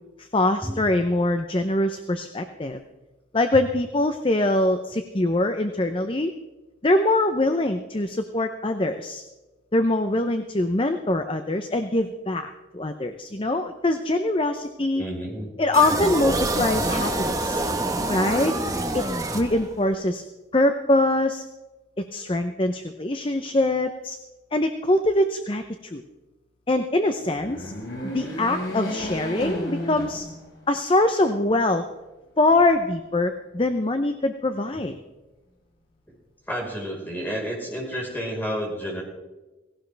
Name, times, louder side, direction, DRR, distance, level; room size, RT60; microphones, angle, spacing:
voice 1, 0.2-2.8 3.3-6.3 6.8-9.2 9.7-15.0 15.6-17.6 18.1-18.6 18.9-19.0 19.3-20.2 20.5-21.4 22.0-24.2 24.5-25.6 25.9-26.0 26.7-27.7 28.1-30.2 30.7-31.8 32.4-34.9, left 2 dB, 25° left, 7 dB, 0.7 m, -23 dB
voice 2, 14.9-15.5 34.7-34.8 36.5-39.0, equal, 10° left, -3 dB, 4.6 m, -30 dB
sound 1, 15.7-20.0, right 2 dB, 20° right, 1.2 m, -26 dB
sound 2, 27.2-30.8 31.3-31.4 32.4-33.2, equal, 65° left, 5.8 m, -33 dB
17.5 x 17.0 x 3.4 m, 1.1 s
head